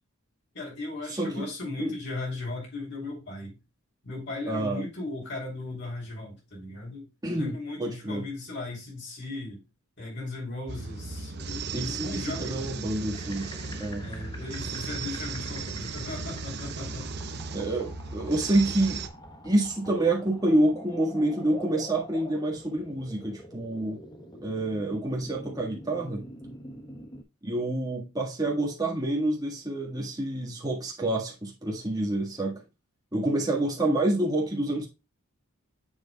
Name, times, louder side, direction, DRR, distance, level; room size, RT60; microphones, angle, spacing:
voice 1, 0.5-3.6 4.0-9.6 10.0-12.7 14.0-17.1, left 2 dB, 55° left, 3.3 m, -37 dB
voice 2, 1.1-1.4 1.8-1.9 4.5-4.8 7.2-7.5 7.8-8.2 11.7-13.5 13.8-14.1 17.5-19.0 19.4-24.0 24.4-26.2 27.4-32.6 33.1-34.9, right 1 dB, 15° right, 1.6 m, -27 dB
sound 1, 10.7-19.1, right 4 dB, 50° right, 0.7 m, -36 dB
sound 2, 13.1-27.2, equal, 20° left, 1.0 m, -45 dB
7.4 x 6.2 x 2.2 m
head